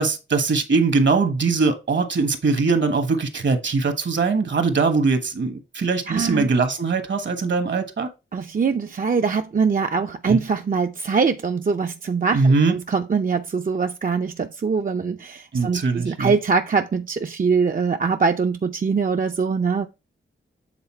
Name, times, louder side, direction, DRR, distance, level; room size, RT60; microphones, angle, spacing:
voice 1, 0.0-8.1 10.3-10.4 12.3-12.7 15.5-16.3, right 4 dB, 60° right, 1.3 m, -21 dB
voice 2, 6.1-6.5 8.3-19.9, right 5 dB, 40° right, 0.6 m, -23 dB
8.0 x 3.9 x 4.4 m
wide cardioid pair, 85°, 21 cm